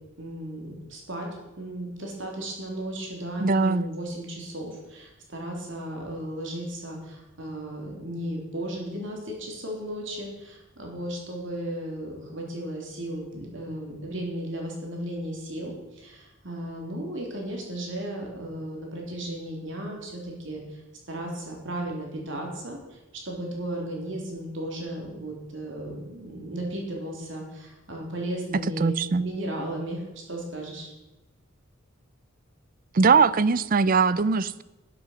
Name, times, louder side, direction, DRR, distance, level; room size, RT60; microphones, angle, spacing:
voice 1, 0.2-1.3 1.6-20.8 21.1-23.0 23.3-30.9, right 1 dB, 65° right, 0 dB, 3.6 m, -35 dB
voice 2, 3.4-3.8 28.8-29.2 32.9-34.6, right 5 dB, 45° right, 18 dB, 0.5 m, -21 dB
12.0 x 7.8 x 6.7 m, 1.0 s
head